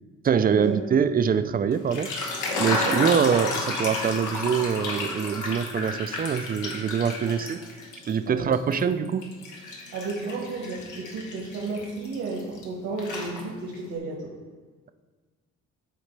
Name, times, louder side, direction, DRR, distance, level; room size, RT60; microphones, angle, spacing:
voice 1, 0.2-2.1 2.6-7.6 8.1-9.3, right 7 dB, 30° right, 11 dB, 0.4 m, -24 dB
sound 1, 1.7-8.2 8.5-12.7 13.0-13.8, left 2 dB, 80° left, 1.2 m, -32 dB
voice 2, 2.7-3.1 7.3-7.4 8.3-8.5 9.9-14.3, right 3 dB, 85° right, -5 dB, 1.6 m, -33 dB
12.0 x 4.1 x 3.3 m, 1.4 s
cardioid pair, 90°, 30 cm